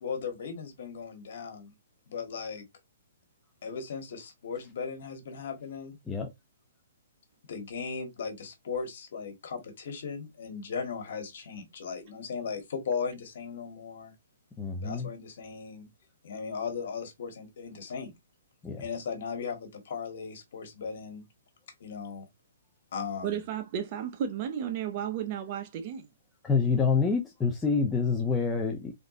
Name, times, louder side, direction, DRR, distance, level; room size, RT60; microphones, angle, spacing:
voice 1, 0.0-1.7 2.1-2.6 3.6-6.0 7.5-14.1 14.8-15.9 16.2-18.1 18.8-21.2 21.8-22.3 22.9-23.4, left 5 dB, 55° left, 2.0 m, -37 dB
voice 2, 14.6-15.1 18.6-18.8 26.4-28.9, left 5 dB, 10° left, 0.6 m, -27 dB
voice 3, 23.2-26.1, right 9 dB, 30° right, 0.8 m, -33 dB
3.9 x 3.5 x 3.9 m
hypercardioid pair, 165°, 0 cm